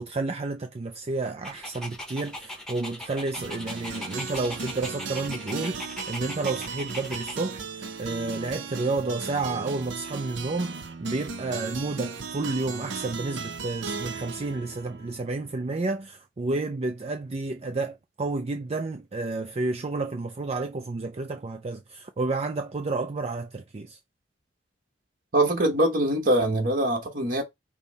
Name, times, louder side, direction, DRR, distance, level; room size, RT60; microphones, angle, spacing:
voice 1, 0.0-24.0, right 3 dB, 35° right, 0.4 m, -31 dB
Dog, 1.4-7.4, left 1 dB, 5° left, 1.0 m, -39 dB
sound 1, 3.3-15.6, right 5 dB, 75° right, 0.7 m, -37 dB
voice 2, 25.3-27.4, right 1 dB, 50° right, 1.3 m, -23 dB
5.5 x 2.2 x 4.0 m
head